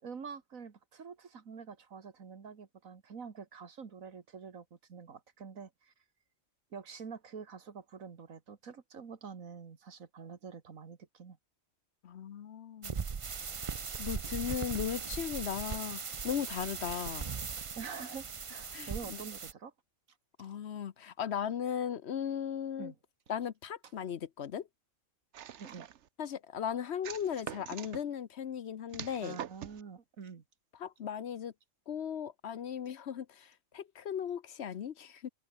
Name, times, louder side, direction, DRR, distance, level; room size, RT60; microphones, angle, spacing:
voice 1, 0.0-5.9 6.7-11.4 17.8-19.7 20.4-20.5 22.8-23.0 25.6-25.9 29.2-30.4, right 6 dB, 90° right, 2.2 m, -46 dB
voice 2, 12.0-13.1 14.0-17.3 18.7-19.2 20.4-22.9 23.3-24.7 26.2-29.4 30.8-31.5 31.9-35.3, left 8 dB, 60° left, 1.0 m, -37 dB
sound 1, 12.8-19.5, right 6 dB, 35° right, 0.5 m, -39 dB
sound 2, 25.3-26.1 27.0-28.0 28.9-29.8, right 9 dB, 60° right, 1.1 m, -44 dB
omnidirectional pair, 1.4 m